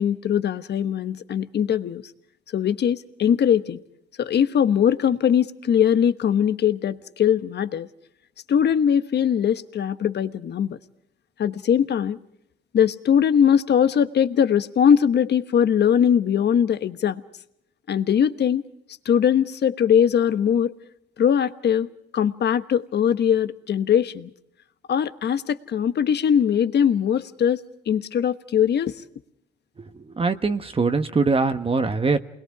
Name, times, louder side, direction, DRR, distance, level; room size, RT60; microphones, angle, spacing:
voice 1, 0.0-2.0 2.5-3.8 4.2-7.9 8.5-10.8 11.4-12.2 12.7-17.2 17.9-18.6 19.0-20.7 21.2-24.3 24.9-28.9, left 8 dB, 60° left, 12 dB, 1.2 m, -21 dB
voice 2, 29.8-32.2, right 4 dB, 30° right, 8 dB, 1.2 m, -23 dB
29.0 x 21.0 x 4.8 m, 0.75 s
cardioid pair, 90°, 20 cm